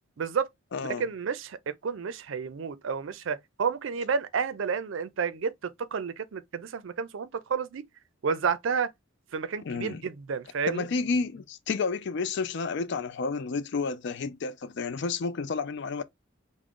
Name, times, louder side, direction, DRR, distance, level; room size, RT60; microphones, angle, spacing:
voice 1, 0.2-0.5 1.0-7.8 8.2-8.9 9.3-10.9, right 6 dB, 70° right, 0.4 m, -31 dB
voice 2, 0.7-1.1 9.7-10.0 10.7-16.0, left 4 dB, 60° left, 0.4 m, -30 dB
3.6 x 2.1 x 3.6 m
head